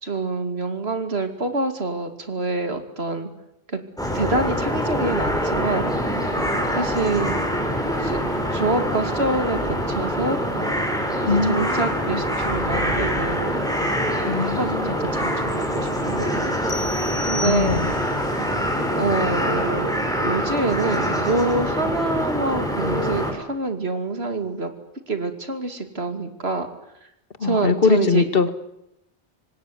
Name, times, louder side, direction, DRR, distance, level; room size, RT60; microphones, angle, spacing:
voice 1, 0.0-3.3 3.7-3.8 4.1-5.9 6.7-7.3 8.0-8.2 8.5-10.4 11.2-13.5 14.4-17.0 17.3-17.8 18.9-19.9 20.2-24.7 25.1-26.7 27.4-28.3, right 3 dB, 70° right, 8 dB, 2.9 m, -26 dB
sound 1, 4.0-23.3, equal, 5° left, 5.4 m, -24 dB
voice 2, 11.3-12.2 14.3-15.0 17.4-17.9 27.4-28.5, left 5 dB, 60° left, 12 dB, 1.8 m, -22 dB
sound 2, 16.7-18.2, left 1 dB, 25° left, 1.6 m, -33 dB
26.0 x 19.5 x 9.6 m, 0.84 s
omnidirectional pair, 1.1 m